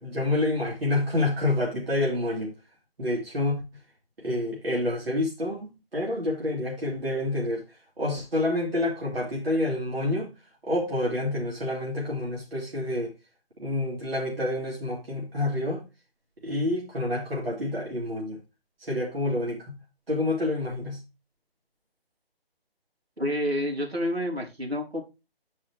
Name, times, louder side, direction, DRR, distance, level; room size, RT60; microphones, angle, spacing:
voice 1, 0.0-2.5 3.0-3.6 4.2-7.6 8.0-10.3 10.6-13.1 13.6-15.8 16.4-18.4 18.8-19.8 20.1-21.0, left 1 dB, 70° right, 2.5 m, -28 dB
voice 2, 23.2-25.0, equal, 90° right, 3.3 m, -28 dB
8.1 x 4.9 x 4.5 m
figure-of-eight pair, 150°, 30 cm